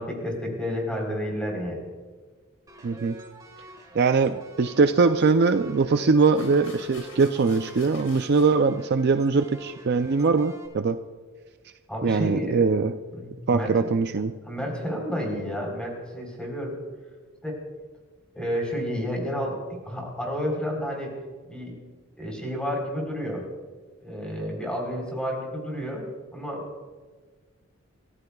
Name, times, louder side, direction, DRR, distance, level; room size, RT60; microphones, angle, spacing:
voice 1, 0.0-1.9 11.9-12.7 13.1-13.9 14.5-16.8 17.4-17.6 18.3-21.1 21.5-21.8 22.2-23.4 24.0-26.1 26.3-26.6, equal, 5° left, -1 dB, 3.7 m, -30 dB
sound 1, 2.7-10.7, right 2 dB, 15° right, 2.0 m, -47 dB
voice 2, 2.8-3.2 3.9-11.0 12.0-12.9 13.5-14.3, right 4 dB, 50° right, 8 dB, 0.4 m, -22 dB
sound 2, 4.7-4.8 5.9-6.0 6.3-8.5, left 3 dB, 75° left, 4.4 m, -47 dB
27.5 x 14.5 x 2.3 m, 1.4 s
head